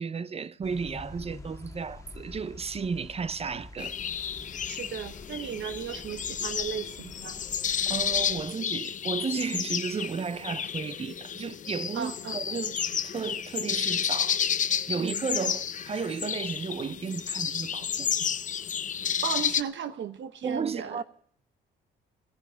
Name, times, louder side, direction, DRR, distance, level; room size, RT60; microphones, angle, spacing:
voice 1, 0.0-3.9 7.9-14.4 14.9-18.3 20.4-21.0, right 5 dB, 30° right, 0.6 m, -33 dB
sound 1, 0.6-8.5, left 2 dB, 15° left, 1.8 m, -47 dB
sound 2, 3.8-19.6, left 8 dB, 40° left, 0.6 m, -31 dB
voice 2, 4.7-7.4 11.9-12.4 15.0-15.3 19.2-21.0, right 8 dB, 65° right, 0.9 m, -35 dB
16.0 x 10.5 x 6.7 m
cardioid pair, 90°, 20 cm